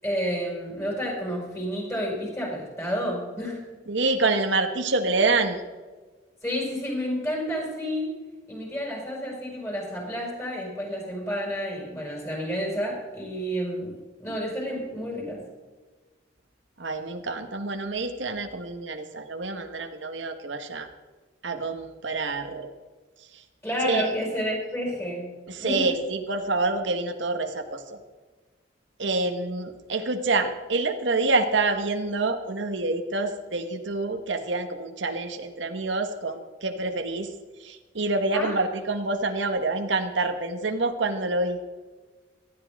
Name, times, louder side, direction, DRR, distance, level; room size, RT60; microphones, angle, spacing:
voice 1, 0.0-3.6 6.4-8.1 8.5-13.9 14.2-15.4 23.6-25.3 25.6-25.9 38.3-38.6, equal, 15° left, -2 dB, 5.3 m, -30 dB
voice 2, 3.9-5.6 16.8-20.9 21.4-22.7 23.8-24.1 25.5-28.0 29.0-37.3 37.6-41.6, right 3 dB, 80° right, 6 dB, 1.3 m, -27 dB
18.5 x 12.5 x 3.5 m, 1.3 s
head